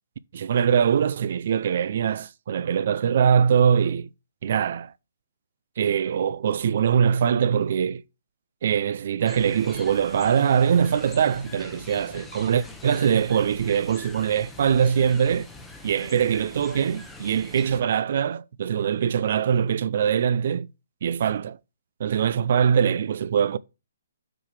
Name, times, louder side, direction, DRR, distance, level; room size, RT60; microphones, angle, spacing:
voice 1, 0.3-4.1 4.4-4.9 5.8-8.0 8.6-15.5 15.8-20.7 21.0-21.6 22.0-23.6, right 8 dB, 50° right, 0.5 m, -22 dB
sound 1, 9.2-17.8, left 2 dB, 5° left, 1.0 m, -43 dB
6.1 x 4.7 x 6.6 m
hypercardioid pair, 165°, 0 cm